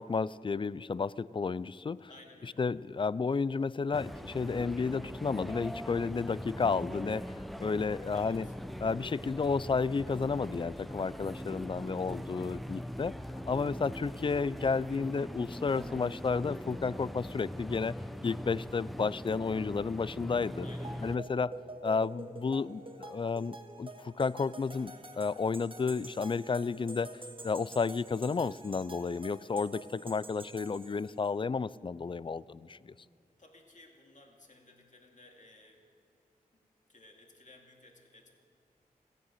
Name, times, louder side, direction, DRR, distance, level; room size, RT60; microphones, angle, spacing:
voice 1, 0.0-2.1 2.6-8.5 8.8-13.1 13.5-17.9 18.2-20.7 21.0-21.5 21.8-27.1 27.4-32.9, left 5 dB, 35° left, 20 dB, 0.4 m, -32 dB
voice 2, 2.1-2.7 8.1-8.5 20.6-21.3 33.4-35.9 36.5-38.4, left 2 dB, 55° left, 1 dB, 2.3 m, -57 dB
sound 1, 3.9-21.2, equal, ahead, 0.6 m, -41 dB
sound 2, 20.7-31.3, right 2 dB, 35° right, 1.7 m, -48 dB
16.5 x 9.7 x 7.7 m, 2.5 s
cardioid pair, 45°, 15 cm